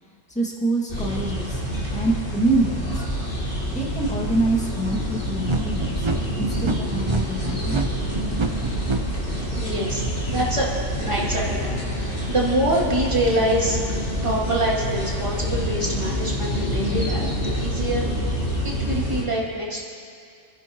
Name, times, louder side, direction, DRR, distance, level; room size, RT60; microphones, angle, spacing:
voice 1, 0.3-1.6 1.9-3.0 3.7-6.1 6.4-8.0, right 2 dB, 5° left, -3 dB, 2.1 m, -25 dB
sound 1, 0.9-19.2, equal, 40° left, 2.8 m, -27 dB
sound 2, 5.4-9.0, right 3 dB, 50° right, 0.3 m, -26 dB
voice 2, 9.5-10.7 11.0-13.8 14.2-17.3 17.6-18.0 18.6-19.8, right 1 dB, 20° right, -6 dB, 2.8 m, -25 dB
29.5 x 11.0 x 3.1 m, 2.3 s
omnidirectional pair, 1.5 m